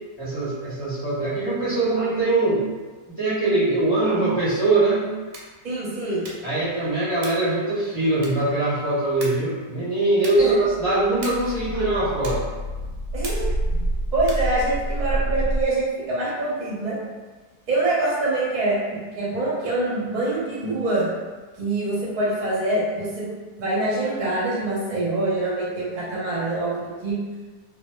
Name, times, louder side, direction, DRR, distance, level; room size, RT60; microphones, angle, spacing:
voice 1, 0.2-2.6 3.2-5.1 6.4-12.4, right 2 dB, 10° left, -13 dB, 0.8 m, -22 dB
sound 1, 5.2-5.6 6.2-6.6 7.2-7.5 8.2-8.6 9.2-9.5 10.2-10.5 11.2-11.6 12.2-12.5 13.2-13.6 14.2-14.5, right 2 dB, 90° right, 1.2 m, -39 dB
voice 2, 5.6-6.2 10.4-10.5 13.1-13.4 14.1-17.0 17.7-21.1 21.6-23.2 23.6-27.1, right 2 dB, 45° right, -7 dB, 0.5 m, -25 dB
sound 2, 10.4-15.6, right 1 dB, 60° left, 1.0 m, -28 dB
2.7 x 2.1 x 2.2 m, 1.3 s
omnidirectional pair, 1.8 m